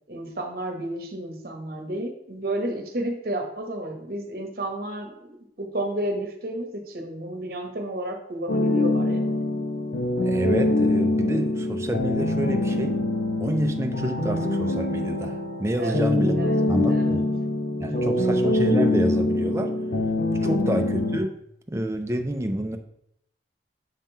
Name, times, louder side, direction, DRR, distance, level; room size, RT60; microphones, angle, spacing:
voice 1, 0.1-5.1 5.6-9.2 15.8-16.0 16.4-17.2 17.9-18.1 20.5-20.6, right 1 dB, 55° right, 4 dB, 1.0 m, -31 dB
sound 1, 8.5-21.2, left 2 dB, 75° left, 0.8 m, -24 dB
voice 2, 10.2-13.0 13.4-16.4 16.7-17.3 17.8-19.7 20.3-21.3 21.7-22.8, right 1 dB, 15° right, 4 dB, 0.5 m, -28 dB
7.4 x 3.7 x 4.5 m, 0.75 s
head